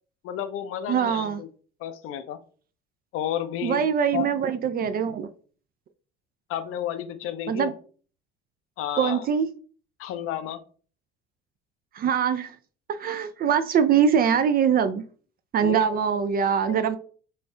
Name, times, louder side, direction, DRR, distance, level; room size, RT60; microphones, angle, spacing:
voice 1, 0.2-1.5 1.8-2.4 3.1-3.9 4.1-4.3 6.5-7.7 8.8-9.3 10.0-10.6 15.6-15.9 16.7-17.0, left 10 dB, 45° left, 0.6 m, -31 dB
voice 2, 0.9-1.4 3.6-5.3 7.5-7.7 9.0-9.5 11.9-12.6 12.9-15.0 15.5-17.0, right 7 dB, 30° right, 0.4 m, -23 dB
5.3 x 3.1 x 2.3 m
figure-of-eight pair, 50°, 30 cm